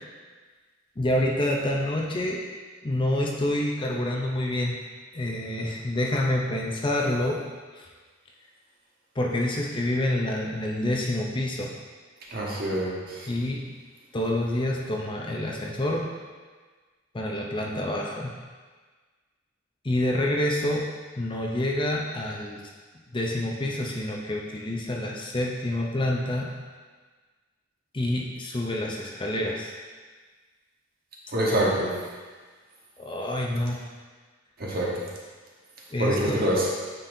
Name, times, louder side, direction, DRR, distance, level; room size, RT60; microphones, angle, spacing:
voice 1, 1.0-2.4 2.8-4.7 5.1-7.4 7.7-7.9 9.2-11.7 13.3-13.7 14.1-16.1 17.1-18.3 19.8-20.9 21.2-22.6 23.1-26.5 27.9-29.7 33.0-33.8 35.9-36.4, left 1 dB, 25° left, -1 dB, 0.5 m, -27 dB
voice 2, 12.3-13.3 31.3-31.9 34.6-34.9 36.0-36.7, right 1 dB, 45° right, -4 dB, 1.2 m, -25 dB
9.0 x 4.2 x 2.7 m, 1.4 s
head